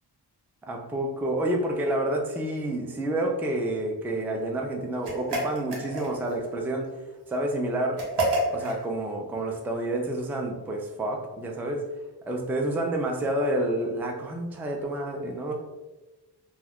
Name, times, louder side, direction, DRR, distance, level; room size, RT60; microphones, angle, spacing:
voice 1, 0.6-6.9 7.3-8.0 8.5-11.9 12.3-15.5, right 1 dB, 5° right, 1 dB, 0.3 m, -29 dB
sound 1, 5.0-6.4 8.0-8.8, right 1 dB, 85° right, 0.8 m, -28 dB
2.3 x 2.3 x 3.4 m, 1.1 s
wide cardioid pair, 85°, 41 cm